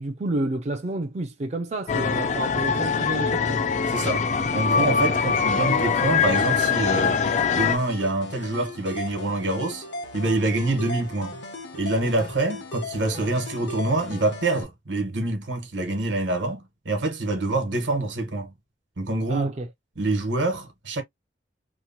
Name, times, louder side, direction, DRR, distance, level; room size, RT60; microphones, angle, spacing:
voice 1, 0.0-3.6 12.0-12.1 19.3-19.7, right 2 dB, 35° right, 0.4 m, -30 dB
sound 1, 1.9-7.8, left 6 dB, 40° left, 0.4 m, -23 dB
voice 2, 3.9-4.2 4.5-7.2 7.5-9.8 10.1-11.4 11.7-18.5 19.0-19.5 20.0-21.0, right 2 dB, 85° right, 1.1 m, -26 dB
sound 2, 6.2-14.6, left 2 dB, 70° left, 0.9 m, -37 dB
2.9 x 2.1 x 2.6 m
head